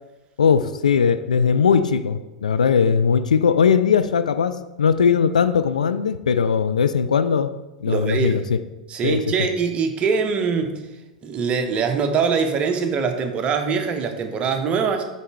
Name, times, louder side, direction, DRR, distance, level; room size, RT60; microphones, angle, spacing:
voice 1, 0.4-7.5 7.8-8.6 9.0-9.2, left 6 dB, 80° left, 12 dB, 0.3 m, -19 dB
voice 2, 7.9-8.4 8.9-10.9 11.2-15.0, right 5 dB, 30° right, 6 dB, 0.8 m, -23 dB
5.3 x 4.2 x 4.5 m, 1.1 s
hypercardioid pair, 95°, 4 cm